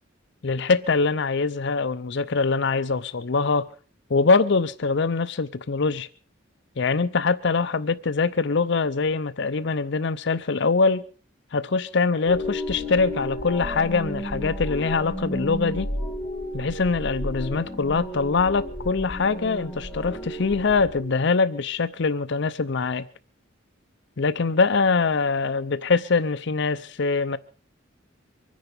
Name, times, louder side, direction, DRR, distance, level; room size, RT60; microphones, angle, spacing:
voice 1, 0.4-3.7 4.1-6.1 6.8-11.0 11.5-15.9 16.5-23.0 24.2-27.4, left 4 dB, 65° left, 0.7 m, -23 dB
sound 1, 12.3-21.0, equal, 10° left, 5.1 m, -32 dB
24.5 x 10.0 x 5.2 m
head